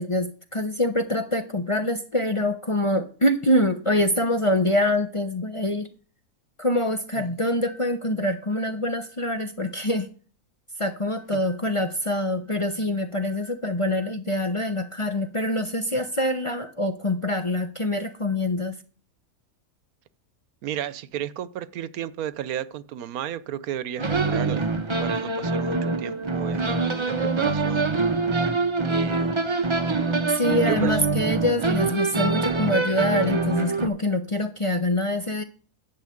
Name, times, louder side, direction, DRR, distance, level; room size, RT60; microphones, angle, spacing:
voice 1, 0.0-5.9 6.6-10.1 10.8-18.8 30.3-35.4, left 1 dB, 30° left, 0.7 m, -25 dB
voice 2, 20.6-24.7 25.0-27.9 28.8-29.3 30.6-31.0, right 10 dB, 85° right, 1.2 m, -33 dB
sound 1, 24.0-33.9, right 3 dB, 25° right, 0.8 m, -24 dB
11.0 x 4.8 x 7.8 m
omnidirectional pair, 1.5 m